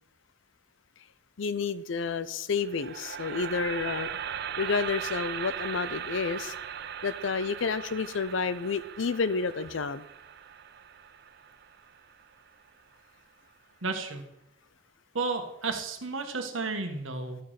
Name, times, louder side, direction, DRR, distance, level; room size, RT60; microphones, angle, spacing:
voice 1, 1.4-4.1 4.6-6.5 7.0-10.0, left 5 dB, 65° left, 15 dB, 0.5 m, -30 dB
sound 1, 2.6-12.7, right 8 dB, 50° right, 0.4 m, -39 dB
voice 2, 13.8-14.2 15.1-17.4, right 3 dB, 75° right, 5 dB, 1.3 m, -32 dB
12.5 x 5.1 x 5.6 m, 0.83 s
head